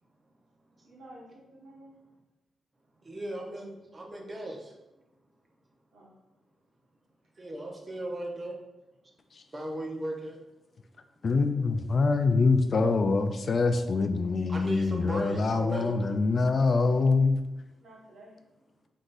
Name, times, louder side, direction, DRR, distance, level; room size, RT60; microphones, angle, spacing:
voice 1, 0.8-2.0 5.9-6.1 12.3-12.5 17.8-18.4, right 1 dB, 90° right, -7 dB, 1.4 m, -52 dB
voice 2, 3.0-4.7 7.4-8.6 9.5-10.4 14.5-16.2, right 1 dB, 35° right, 1 dB, 0.8 m, -37 dB
voice 3, 11.2-17.4, left 3 dB, 55° left, 8 dB, 0.3 m, -24 dB
3.8 x 3.6 x 2.6 m, 0.96 s
cardioid pair, 65°, 0 cm